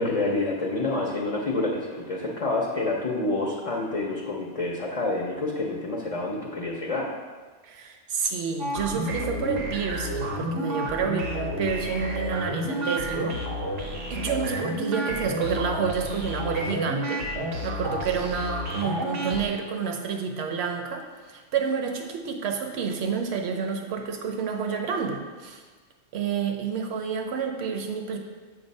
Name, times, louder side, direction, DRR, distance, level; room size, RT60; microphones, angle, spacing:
voice 1, 0.0-7.1, left 2 dB, 40° left, -2 dB, 0.5 m, -28 dB
voice 2, 7.6-13.4 14.1-25.6 26.1-28.2, right 6 dB, 70° right, 4 dB, 0.9 m, -29 dB
sound 1, 8.6-19.5, equal, 85° right, 1.2 m, -31 dB
7.4 x 2.6 x 5.3 m, 1.4 s
omnidirectional pair, 1.2 m